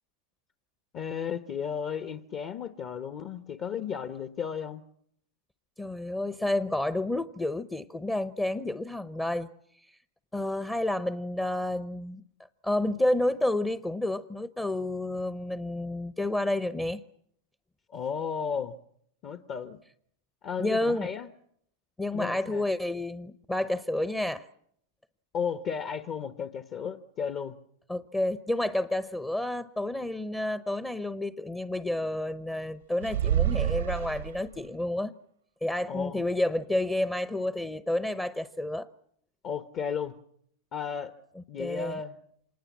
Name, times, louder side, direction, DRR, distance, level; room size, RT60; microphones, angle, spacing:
voice 1, 0.9-4.8 17.9-18.8 19.2-19.8 20.4-21.3 22.1-22.6 25.3-27.6 35.9-36.2 39.4-40.2 40.7-41.1 41.5-42.2, left 7 dB, 40° left, 9 dB, 1.2 m, -34 dB
voice 2, 5.8-9.5 10.3-12.2 12.6-17.0 20.6-21.1 22.0-24.4 27.9-35.1 35.6-38.9 41.6-42.0, left 1 dB, 10° left, 13 dB, 0.9 m, -30 dB
sound 1, 33.0-34.7, right 11 dB, 85° right, 1.0 m, -28 dB
26.5 x 20.0 x 7.4 m, 0.70 s
hypercardioid pair, 115°, 0 cm